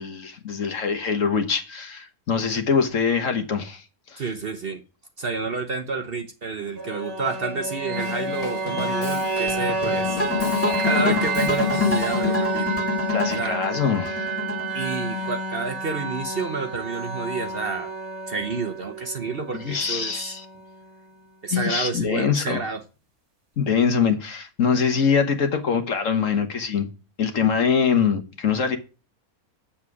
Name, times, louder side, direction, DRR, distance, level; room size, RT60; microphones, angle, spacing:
voice 1, 0.0-3.8 4.1-4.2 10.1-11.2 13.1-14.2 19.5-20.4 21.5-22.6 23.6-26.9 27.2-28.8, left 6 dB, 60° left, 1.5 m, -24 dB
voice 2, 4.2-4.8 5.2-10.2 10.8-12.8 13.4-13.6 14.7-17.9 18.3-20.4 21.4-22.8, right 4 dB, 45° right, 0.9 m, -29 dB
sound 1, 6.8-20.7, right 1 dB, 90° right, 2.4 m, -29 dB
Drum kit / Drum, 8.0-12.4, left 2 dB, 25° left, 1.2 m, -36 dB
sound 2, 10.2-15.3, left 3 dB, 10° left, 1.9 m, -26 dB
7.5 x 7.3 x 4.8 m
omnidirectional pair, 1.6 m